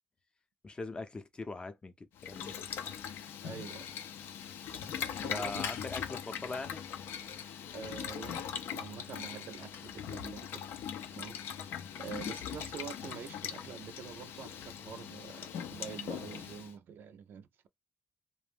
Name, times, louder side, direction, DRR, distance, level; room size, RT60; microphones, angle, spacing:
voice 1, 0.6-2.6 4.8-5.0 5.3-6.8, left 3 dB, 25° left, 0.5 m, -41 dB
Boiling, 2.2-16.7, left 8 dB, 80° left, 0.4 m, -41 dB
voice 2, 3.4-3.9 5.2-5.9 7.7-10.6 11.1-11.4 12.0-17.7, right 7 dB, 70° right, 0.4 m, -46 dB
2.4 x 2.1 x 3.3 m
cardioid pair, 75°, 4 cm